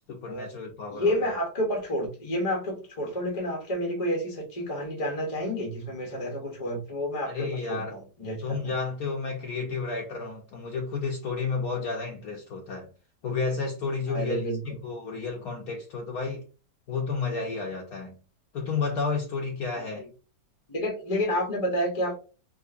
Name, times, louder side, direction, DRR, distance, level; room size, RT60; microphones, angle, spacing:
voice 1, 0.1-1.3 7.3-8.0 8.4-12.9 13.2-16.5 16.9-18.2 18.5-20.1, left 4 dB, 70° left, 1.0 m, -31 dB
voice 2, 0.9-8.7 14.1-14.6 20.0-20.1 20.7-22.2, equal, 30° left, 0.6 m, -30 dB
3.7 x 2.8 x 2.5 m
omnidirectional pair, 1.8 m